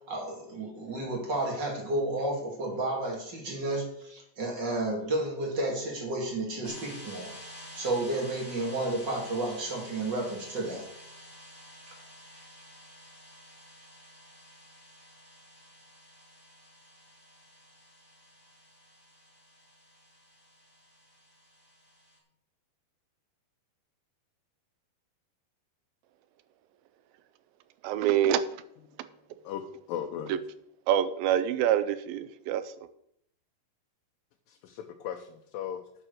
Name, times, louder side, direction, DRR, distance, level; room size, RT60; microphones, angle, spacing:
voice 1, 0.1-7.3 7.8-10.9 11.9-12.0, right 2 dB, 30° right, 2.6 m, -32 dB
sound 1, 6.6-22.2, equal, 15° right, 2.6 m, -50 dB
voice 2, 27.8-28.4 30.9-32.6, right 10 dB, 80° right, 2.3 m, -25 dB
voice 3, 29.9-30.4 34.5-35.8, left 9 dB, 75° left, 2.3 m, -37 dB
9.0 x 7.7 x 6.4 m
omnidirectional pair, 4.3 m